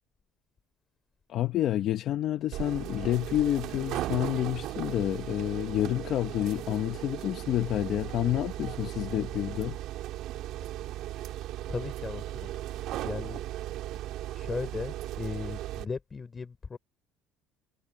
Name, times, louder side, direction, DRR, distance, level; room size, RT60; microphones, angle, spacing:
voice 1, 1.3-9.8, left 13 dB, 50° left, 1.1 m, -29 dB
sound 1, 2.5-15.8, right 14 dB, 60° right, 2.2 m, -37 dB
voice 2, 11.7-12.5 13.0-13.4 14.3-16.8, left 5 dB, 20° left, 4.8 m, -37 dB
cardioid pair, 145°, 0 cm